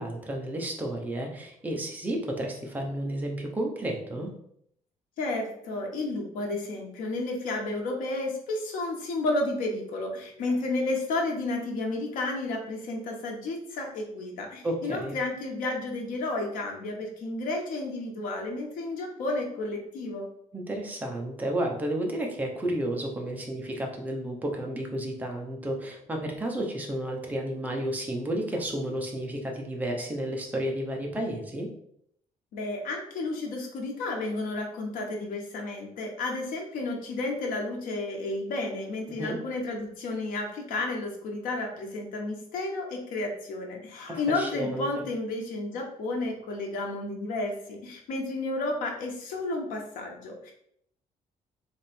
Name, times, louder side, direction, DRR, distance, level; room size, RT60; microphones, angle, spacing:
voice 1, 0.0-4.3 14.6-15.1 20.5-31.7 39.1-39.4 44.1-45.0, right 1 dB, 10° right, 1 dB, 0.8 m, -32 dB
voice 2, 5.2-20.3 32.5-50.5, left 2 dB, 85° left, 1 dB, 1.2 m, -32 dB
3.6 x 3.2 x 4.3 m, 0.70 s
cardioid pair, 165°, 14 cm